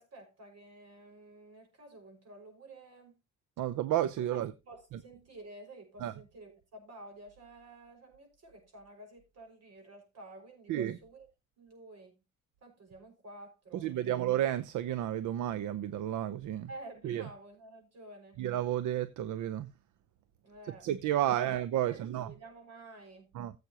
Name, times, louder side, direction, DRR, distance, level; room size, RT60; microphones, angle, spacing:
voice 1, 0.0-3.2 4.3-11.3 11.6-12.2 12.6-14.1 16.7-18.4 20.4-20.9 21.2-21.5 21.8-23.3, right 2 dB, 55° right, 5.9 m, -51 dB
voice 2, 3.6-4.5 6.0-6.1 10.7-11.0 13.7-16.7 17.0-17.3 18.4-19.7 20.8-22.3 23.3-23.5, right 12 dB, 80° right, 0.7 m, -31 dB
15.5 x 8.0 x 2.9 m
cardioid pair, 90°, 30 cm